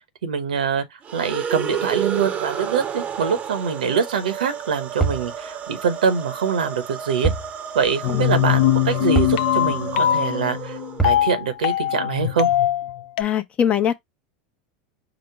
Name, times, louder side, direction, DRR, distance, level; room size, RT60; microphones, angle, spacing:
voice 1, 0.2-7.3 7.7-10.8 11.0-12.5, right 6 dB, 90° right, 1.0 m, -24 dB
sound 1, 1.0-11.3, right 8 dB, 30° right, 0.7 m, -31 dB
sound 2, 5.0-5.3 7.2-7.5 7.8-7.9 9.1-9.4 11.0-11.3, right 4 dB, 10° left, 1.1 m, -23 dB
sound 3, 8.0-13.2, left 12 dB, 65° left, 0.4 m, -21 dB
voice 2, 13.2-13.9, left 9 dB, 30° left, 0.7 m, -21 dB
5.0 x 2.1 x 4.7 m
hypercardioid pair, 110°, 4 cm